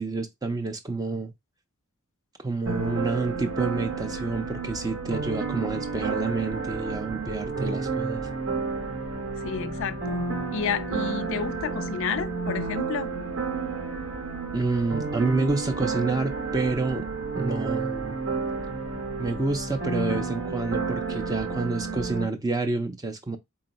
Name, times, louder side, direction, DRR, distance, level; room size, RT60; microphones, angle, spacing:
voice 1, 0.0-1.3 2.4-8.3 14.5-17.1 17.3-18.2 19.2-23.4, right 3 dB, 15° right, 0.4 m, -28 dB
sound 1, 2.7-22.3, right 4 dB, 70° right, 1.1 m, -31 dB
voice 2, 9.4-10.2 10.5-13.1, left 7 dB, 60° left, 0.4 m, -31 dB
3.8 x 2.1 x 3.9 m
head